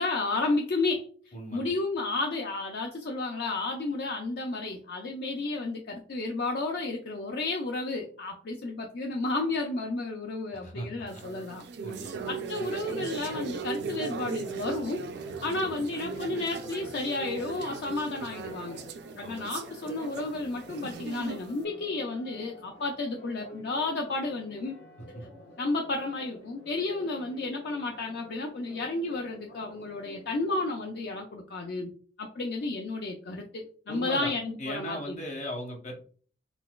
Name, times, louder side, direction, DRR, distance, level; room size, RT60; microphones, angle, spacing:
voice 1, 0.0-11.6 12.0-15.1 15.4-18.8 19.1-24.7 25.6-31.9 32.2-35.2, left 3 dB, 55° left, 2 dB, 0.4 m, -32 dB
voice 2, 1.3-1.7 10.5-11.2 11.8-12.2 15.4-15.6 19.2-19.4 25.1-25.2 33.9-34.3 34.6-35.9, equal, 40° left, 1 dB, 0.8 m, -38 dB
sound 1, 11.1-21.6, right 5 dB, 60° right, 0.3 m, -38 dB
Church bell, 12.8-31.1, equal, 85° left, 1.1 m, -50 dB
3.9 x 2.3 x 2.3 m, 0.44 s
head